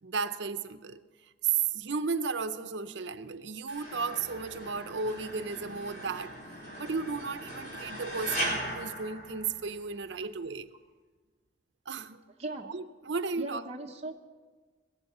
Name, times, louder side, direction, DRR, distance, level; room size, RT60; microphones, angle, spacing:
voice 1, 0.0-1.0 1.4-6.3 6.8-10.7 11.9-12.2 12.6-13.6, right 5 dB, 70° right, 0.6 m, -34 dB
sound 1, 3.7-10.0, right 1 dB, 45° left, 4.5 m, -39 dB
voice 2, 13.4-14.1, right 2 dB, 35° right, 0.8 m, -38 dB
21.5 x 7.4 x 6.8 m
head